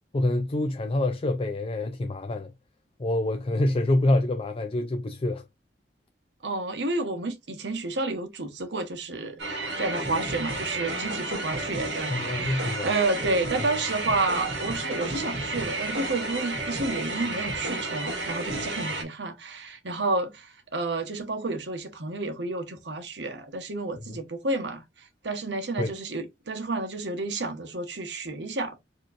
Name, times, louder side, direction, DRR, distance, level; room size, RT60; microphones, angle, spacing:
voice 1, 0.1-2.5 3.0-5.4 12.1-12.9 24.1-24.2 25.8-25.9, left 1 dB, 35° left, 0.5 m, -26 dB
voice 2, 6.4-9.4 9.8-24.8 25.2-28.8, right 2 dB, 75° right, 1.2 m, -30 dB
sound 1, 9.4-19.0, right 2 dB, 90° right, 2.0 m, -31 dB
4.7 x 3.0 x 2.5 m
head